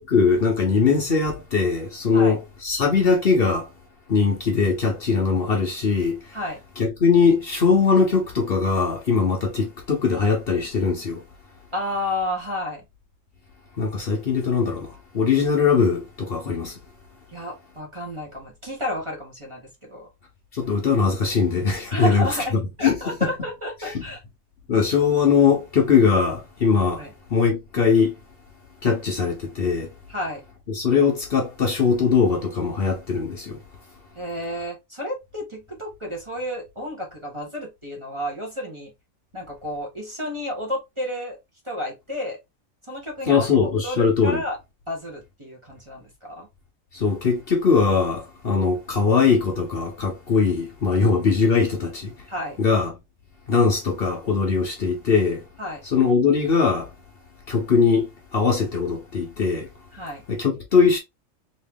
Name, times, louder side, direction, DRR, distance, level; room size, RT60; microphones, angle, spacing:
voice 1, 0.0-3.7 4.1-6.4 6.8-11.2 13.8-16.8 20.5-23.3 24.7-27.0 27.3-28.2 28.8-29.9 30.7-33.6 43.3-44.4 46.9-52.1 52.6-52.9 53.5-55.4 55.8-56.9 57.5-59.7 60.3-61.0, left 5 dB, 50° left, 0.9 m, -21 dB
voice 2, 11.7-12.8 17.3-20.1 21.9-24.2 27.0-27.1 30.1-30.4 34.1-38.9 39.3-41.4 41.6-42.4 42.9-43.5 43.8-44.6 44.9-46.5 52.3-52.6 55.6-55.8 59.9-60.2, left 1 dB, 25° right, 1.1 m, -31 dB
3.1 x 2.9 x 3.4 m
omnidirectional pair, 1.4 m